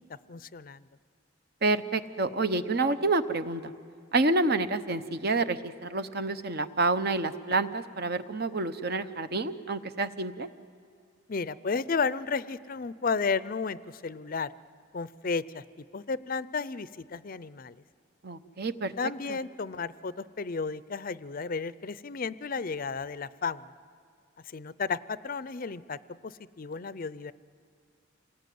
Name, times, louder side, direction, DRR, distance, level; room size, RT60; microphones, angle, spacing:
voice 1, 0.3-0.8 11.3-14.5 14.9-15.6 15.9-17.8 19.0-23.7 24.5-26.0 26.2-27.3, left 4 dB, 45° left, 16 dB, 0.5 m, -33 dB
voice 2, 1.6-3.7 4.1-10.5 18.2-18.9, right 3 dB, 50° right, 11 dB, 0.9 m, -28 dB
27.0 x 20.0 x 9.4 m, 2.4 s
head